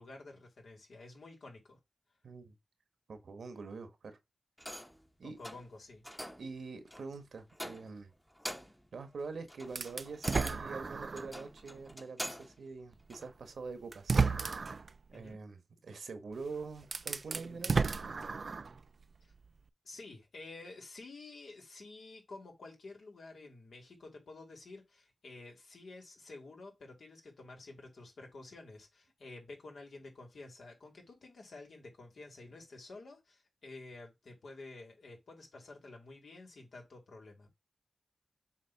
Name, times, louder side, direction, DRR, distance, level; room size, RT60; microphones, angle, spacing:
voice 1, 0.0-1.8 5.2-6.0 15.1-15.4 19.2-19.3 19.8-37.5, left 3 dB, 80° left, 2.6 m, -51 dB
voice 2, 2.2-2.5 3.1-4.2 5.2-5.4 6.4-8.1 8.9-14.2 15.1-17.9, right 4 dB, 85° right, 1.2 m, -45 dB
sound 1, 4.6-5.0 5.4-5.7 6.0-6.5 6.9-7.1 7.5-8.0 8.3-8.9 9.2-12.6 13.1-13.2, equal, 5° left, 0.9 m, -44 dB
sound 2, 9.8-11.4 11.9-12.0 13.2-13.3 13.9-14.9 16.3-16.4 16.8-18.8, right 4 dB, 55° right, 0.4 m, -32 dB
7.4 x 3.0 x 5.8 m
wide cardioid pair, 90°, 0 cm